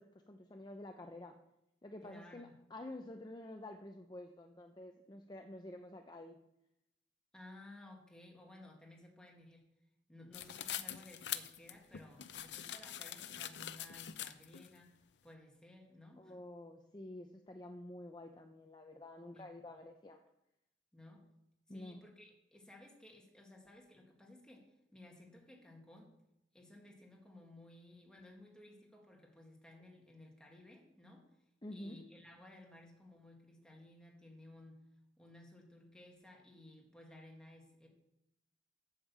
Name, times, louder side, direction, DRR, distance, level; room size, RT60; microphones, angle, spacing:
voice 1, 0.0-1.3 1.8-6.4 16.2-20.2 21.7-22.0 31.6-32.0, left 1 dB, 25° left, 4 dB, 0.6 m, -49 dB
voice 2, 2.0-2.6 7.3-9.6 10.1-14.9 15.2-16.3 19.3-19.8 20.9-21.2 21.7-26.1 26.5-31.3 31.7-34.8 35.2-37.9, left 1 dB, 5° left, 0 dB, 2.0 m, -57 dB
sound 1, 10.3-14.7, left 11 dB, 75° left, 0.6 m, -44 dB
8.5 x 7.3 x 7.3 m, 0.86 s
head